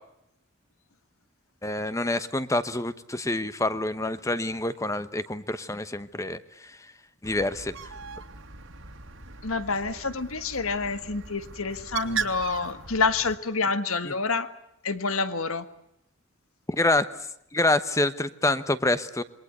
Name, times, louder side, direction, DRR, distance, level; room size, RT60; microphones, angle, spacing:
voice 1, 1.6-6.8 7.2-7.7 16.7-17.1 17.5-19.2, left 2 dB, 15° left, 13 dB, 1.0 m, -27 dB
Bird, 7.2-13.3, right 5 dB, 65° right, 2.6 m, -38 dB
voice 2, 9.4-14.5 14.8-15.7, left 4 dB, 80° left, 12 dB, 1.7 m, -28 dB
27.5 x 22.5 x 8.1 m, 0.80 s
head